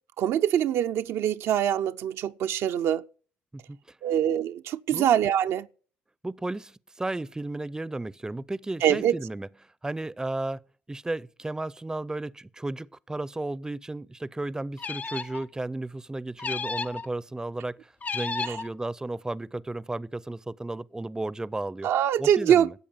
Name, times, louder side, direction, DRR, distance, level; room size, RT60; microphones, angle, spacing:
voice 1, 0.2-3.1 4.0-5.7 8.8-9.1 18.5-18.6 21.8-22.7, right 10 dB, 65° right, 0.5 m, -24 dB
voice 2, 3.5-4.0 4.9-5.1 6.2-9.5 9.8-21.9 22.2-22.7, right 2 dB, 15° right, 0.6 m, -34 dB
sound 1, 14.8-15.4 16.4-17.1 18.0-18.7, left 4 dB, 30° left, 0.6 m, -32 dB
13.5 x 8.4 x 7.3 m
hypercardioid pair, 50°, 5 cm